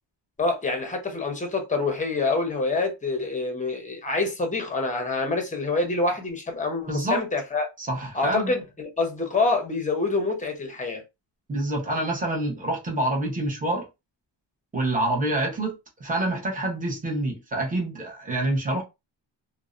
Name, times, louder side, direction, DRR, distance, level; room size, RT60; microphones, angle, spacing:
voice 1, 0.4-7.7 8.1-11.0, left 3 dB, 15° left, 0.6 m, -26 dB
voice 2, 6.9-7.2 7.8-8.5 11.5-13.9 14.7-18.8, right 1 dB, 20° right, 0.8 m, -27 dB
2.6 x 2.0 x 2.4 m
wide cardioid pair, 155°, 45 cm